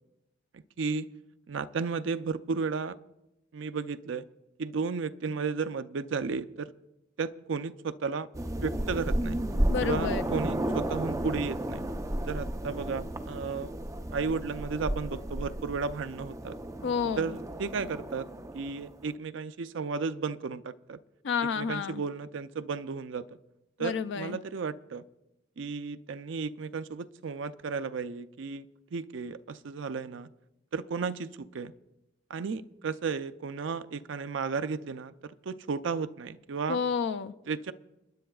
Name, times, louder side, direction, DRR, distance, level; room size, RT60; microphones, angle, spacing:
voice 1, 0.5-1.1 1.5-3.0 3.5-4.2 4.6-6.7 7.2-8.3 8.6-9.4 9.8-11.8 12.2-13.7 14.1-16.6 17.2-18.3 18.5-21.0 21.5-23.2 23.8-25.0 25.6-30.3 30.7-31.7 32.3-36.8 37.5-37.7, right 5 dB, 70° right, 12 dB, 0.5 m, -34 dB
sound 1, 8.3-19.1, right 1 dB, 15° right, 0.6 m, -33 dB
voice 2, 9.7-10.3 16.8-17.3 21.2-22.0 23.8-24.4 36.7-37.3, left 6 dB, 65° left, 13 dB, 0.4 m, -30 dB
29.5 x 10.0 x 2.3 m, 0.97 s
head